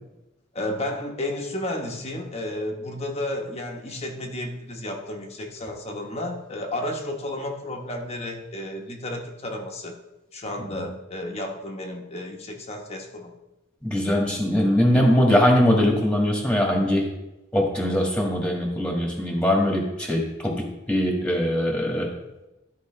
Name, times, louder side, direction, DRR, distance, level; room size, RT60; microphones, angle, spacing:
voice 1, 0.5-9.9 10.3-13.3, left 1 dB, 35° left, 2 dB, 1.0 m, -32 dB
voice 2, 13.8-17.0 17.5-22.1, left 1 dB, 5° left, -1 dB, 1.7 m, -21 dB
13.0 x 4.7 x 3.2 m, 0.97 s
head